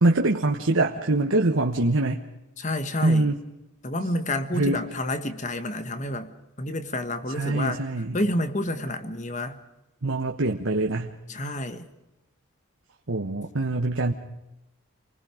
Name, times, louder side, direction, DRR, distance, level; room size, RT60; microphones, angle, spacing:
voice 1, 0.0-2.2 3.0-3.4 4.5-4.9 7.3-8.2 10.0-11.1 13.1-14.1, right 2 dB, 75° right, 1 dB, 1.3 m, -24 dB
voice 2, 2.6-3.3 3.8-6.3 6.6-7.8 8.1-9.6 11.3-11.8, left 1 dB, 35° left, 9 dB, 1.5 m, -29 dB
29.0 x 20.0 x 5.1 m, 0.95 s
head